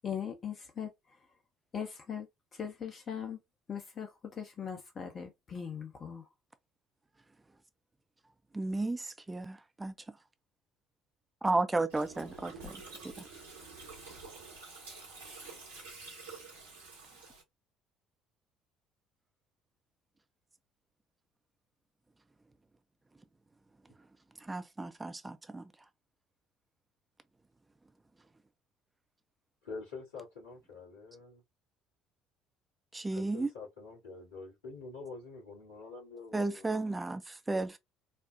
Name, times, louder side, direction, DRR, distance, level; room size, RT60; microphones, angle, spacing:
voice 1, 0.0-0.9 1.7-2.3 2.6-3.4 3.7-4.1 4.4-6.2, left 7 dB, 40° left, 0.7 m, -39 dB
voice 2, 8.5-9.9 11.4-13.2 24.4-25.7 32.9-33.5 36.3-37.8, right 2 dB, 15° right, 0.5 m, -34 dB
Gurgling, 11.9-17.4, right 3 dB, 80° right, 1.1 m, -48 dB
voice 3, 29.6-31.4 33.1-36.8, left 4 dB, 80° left, 2.3 m, -46 dB
4.2 x 2.1 x 2.5 m
figure-of-eight pair, 55°, 0 cm